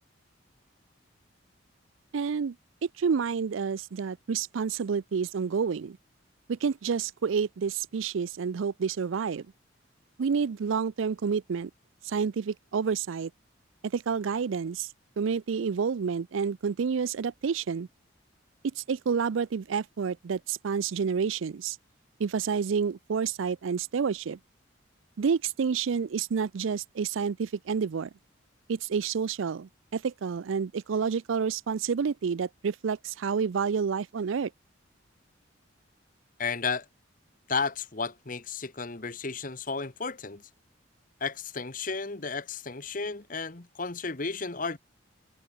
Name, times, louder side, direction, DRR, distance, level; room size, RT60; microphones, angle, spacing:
voice 1, 2.1-2.5 2.8-6.0 6.5-9.5 10.2-11.7 12.0-13.3 13.8-14.9 15.2-17.9 18.8-21.8 22.2-24.4 25.2-28.1 28.7-34.5, right 6 dB, 80° right, 0.4 m, -29 dB
voice 2, 36.4-36.9 37.5-40.4 41.2-44.8, left 4 dB, 40° left, 1.3 m, -33 dB
head